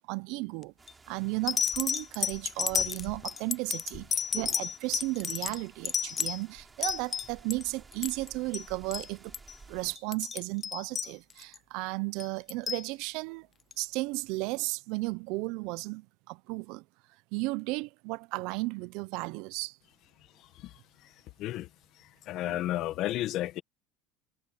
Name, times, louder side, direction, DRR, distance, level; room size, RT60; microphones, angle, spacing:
voice 1, 0.1-0.7 1.1-9.3 9.7-13.5 13.8-16.8 17.3-19.8 22.4-22.6, right 24 dB, 70° right, 0.6 m, -34 dB
sound 1, 0.6-0.9 1.5-7.6 7.9-8.3 8.5-8.7 8.9-9.1 9.3-9.5 10.0-11.6 12.2-12.8 13.7-13.8, left 7 dB, 25° left, 0.4 m, -32 dB
sound 2, 0.8-10.0, right 4 dB, 15° right, 6.1 m, -55 dB
voice 2, 22.3-23.6, left 14 dB, 55° left, 1.6 m, -32 dB
supercardioid pair, 125°, 0 cm